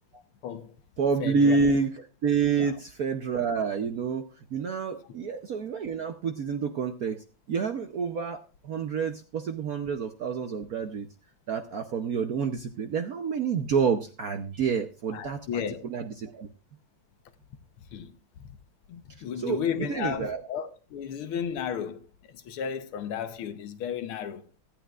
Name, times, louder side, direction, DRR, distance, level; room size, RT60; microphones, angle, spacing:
voice 1, 0.4-0.8 1.2-1.6 2.6-2.7 15.1-15.9 17.9-18.2 18.9-24.5, left 8 dB, 75° left, 1.8 m, -34 dB
voice 2, 1.0-1.9 2.2-11.1 11.5-15.4 15.8-16.5 19.4-20.4, right 5 dB, 60° right, 0.9 m, -28 dB
24.0 x 9.1 x 2.4 m
omnidirectional pair, 2.4 m